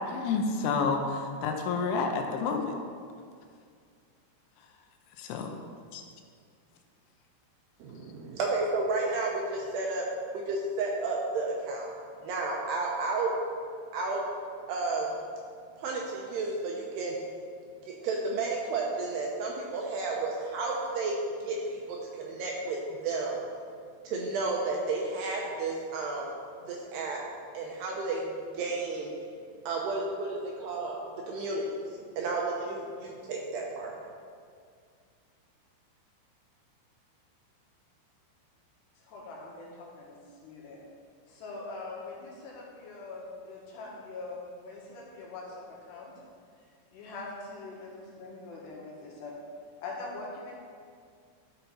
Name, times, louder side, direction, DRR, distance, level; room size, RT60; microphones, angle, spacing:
voice 1, 0.1-2.7 5.2-5.6 5.9-6.0, left 4 dB, 90° left, 4 dB, 3.1 m, -29 dB
voice 2, 7.8-10.1 10.3-11.9 12.2-13.3 13.9-14.2 14.7-15.2 15.8-17.2 17.9-21.1 21.4-22.8 23.0-23.4 24.0-26.3 26.7-27.2 27.5-28.3 28.5-29.1 29.7-31.0 31.3-31.6 32.2-33.9, right 3 dB, 75° right, -1 dB, 2.5 m, -32 dB
voice 3, 39.0-40.8 41.3-46.1 46.9-49.3 49.8-50.5, left 3 dB, 70° left, -4 dB, 3.3 m, -43 dB
13.0 x 5.5 x 4.2 m, 2.2 s
omnidirectional pair, 5.5 m